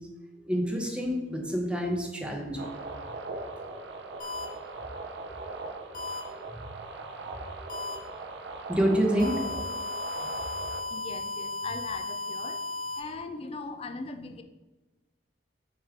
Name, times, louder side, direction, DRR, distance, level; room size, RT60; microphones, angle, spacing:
voice 1, 0.5-2.7 6.3-6.8 7.3-8.0 8.7-9.5 10.0-10.3, equal, 5° right, 0 dB, 0.9 m, -29 dB
sound 1, 2.6-10.8, right 3 dB, 80° right, 0.6 m, -40 dB
sound 2, 4.2-4.4 5.9-6.2 7.7-7.9 9.2-13.0, left 2 dB, 50° left, 1.0 m, -35 dB
voice 2, 10.9-12.6 12.9-14.4, left 3 dB, 35° left, 7 dB, 0.4 m, -39 dB
6.5 x 3.2 x 5.0 m, 1.2 s
head